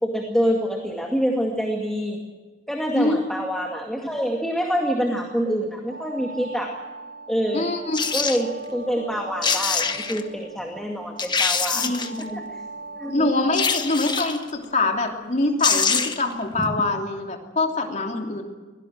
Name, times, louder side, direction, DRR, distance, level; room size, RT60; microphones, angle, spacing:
voice 1, 0.0-2.2 2.7-6.7 7.3-7.6 8.1-11.8 12.2-12.4 12.9-13.3 16.6-16.7, equal, 5° left, 1 dB, 2.2 m, -26 dB
sound 1, 5.9-14.0, right 2 dB, 75° right, 2.1 m, -40 dB
voice 2, 7.5-8.0 11.7-12.4 13.1-18.4, left 2 dB, 40° left, 2 dB, 3.1 m, -24 dB
sound 2, 7.9-8.4 9.1-9.2 9.4-10.2 10.8-10.9 11.2-12.2 13.5-14.4 15.3-15.4 15.6-16.3 16.6-16.7, left 5 dB, 25° left, 1.3 m, -24 dB
23.5 x 17.5 x 7.6 m, 1.3 s
head